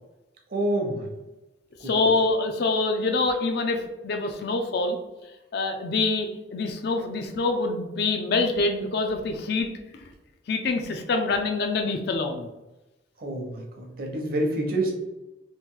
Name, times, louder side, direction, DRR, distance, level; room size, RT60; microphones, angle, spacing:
voice 1, 0.5-1.1 13.2-14.9, right 1 dB, 50° right, 1 dB, 0.7 m, -27 dB
voice 2, 1.8-5.0 5.5-9.7 10.0-10.1 10.5-12.5, left 3 dB, 55° left, 5 dB, 0.4 m, -25 dB
3.0 x 2.5 x 3.6 m, 1.0 s
head